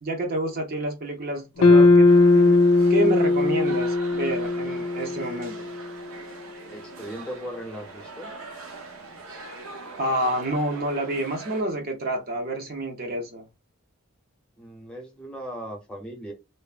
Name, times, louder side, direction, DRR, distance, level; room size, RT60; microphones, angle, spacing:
voice 1, 0.0-2.6 2.9-5.7 10.0-13.4, right 1 dB, 45° right, 0.6 m, -28 dB
sound 1, 1.6-5.9, left 3 dB, 70° left, 0.4 m, -19 dB
sound 2, 2.0-11.6, right 3 dB, 80° right, 0.7 m, -42 dB
voice 2, 6.7-8.3 14.6-16.3, equal, 5° left, 0.7 m, -38 dB
3.2 x 2.0 x 2.3 m
head